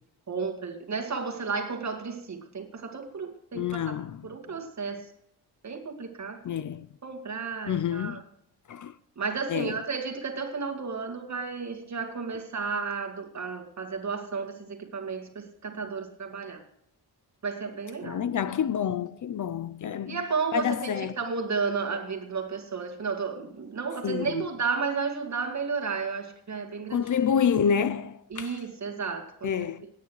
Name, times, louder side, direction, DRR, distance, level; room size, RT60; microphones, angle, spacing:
voice 1, 0.3-3.9 4.2-5.1 5.6-6.4 7.0-8.2 9.2-16.6 17.4-18.2 20.1-27.0 28.3-29.5, right 5 dB, 45° right, 2.2 m, -33 dB
voice 2, 3.5-4.2 6.4-6.9 7.7-8.2 8.7-9.0 9.5-9.8 18.0-20.2 20.5-21.1 24.0-24.5 26.9-28.6 29.4-29.9, left 8 dB, 50° left, 0.6 m, -28 dB
18.0 x 9.7 x 3.2 m
cardioid pair, 115°, 40 cm